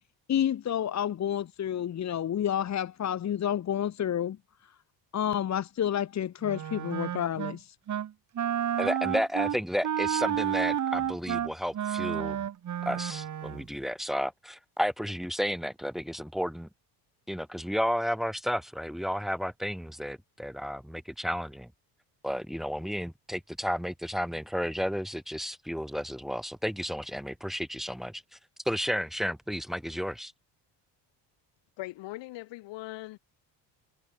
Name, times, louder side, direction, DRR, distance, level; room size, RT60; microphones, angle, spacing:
voice 1, 0.3-4.4 4.6-4.7 5.1-7.8, left 10 dB, 40° left, 1.9 m, -29 dB
Wind instrument woodwind instrument, 6.4-7.6 7.9-8.1 8.4-13.6, right 10 dB, 40° right, 4.3 m, -31 dB
voice 2, 8.8-12.5 12.9-16.7 17.3-21.7 22.2-28.2 28.7-30.3, equal, ahead, 3.8 m, -32 dB
voice 3, 31.8-33.2, left 19 dB, 85° left, 7.1 m, -40 dB
cardioid pair, 150°, 43 cm